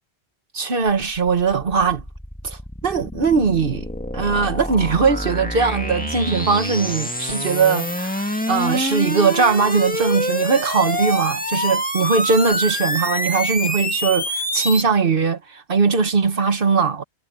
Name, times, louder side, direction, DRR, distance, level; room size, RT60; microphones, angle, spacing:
voice 1, 0.5-2.0 2.4-3.9 4.1-17.0, right 5 dB, 55° right, 1.6 m, -20 dB
sound 1, 0.9-14.8, left 1 dB, 10° left, 1.9 m, -26 dB
omnidirectional pair, 1.1 m